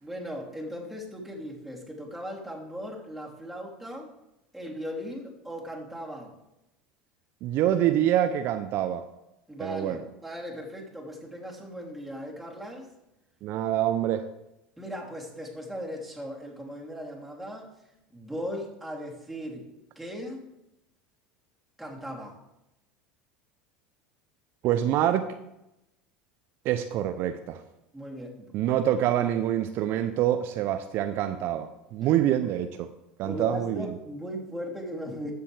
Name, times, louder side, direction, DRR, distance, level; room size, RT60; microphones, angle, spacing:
voice 1, 0.0-4.1 4.5-6.3 9.5-12.9 14.8-17.7 18.1-20.5 21.8-22.4 27.9-28.8 32.0-32.1 33.2-35.3, equal, ahead, -3 dB, 3.1 m, -38 dB
voice 2, 7.4-9.0 9.6-10.0 13.4-14.2 24.6-25.3 26.6-27.6 28.5-32.9 33.2-33.9, right 11 dB, 55° right, 9 dB, 0.6 m, -26 dB
14.5 x 6.8 x 3.4 m, 0.88 s
hypercardioid pair, 80°, 5 cm